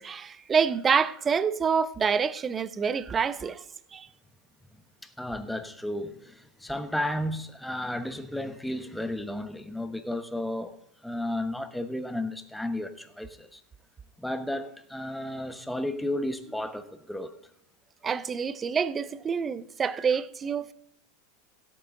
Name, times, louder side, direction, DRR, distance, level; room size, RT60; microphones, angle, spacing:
voice 1, 0.0-3.6 3.9-4.1 18.0-20.7, right 6 dB, 25° right, 0.6 m, -27 dB
voice 2, 5.0-10.8 11.0-13.6 14.2-17.3, left 1 dB, 5° left, 1.1 m, -33 dB
16.5 x 8.6 x 3.8 m
hypercardioid pair, 95°, 0 cm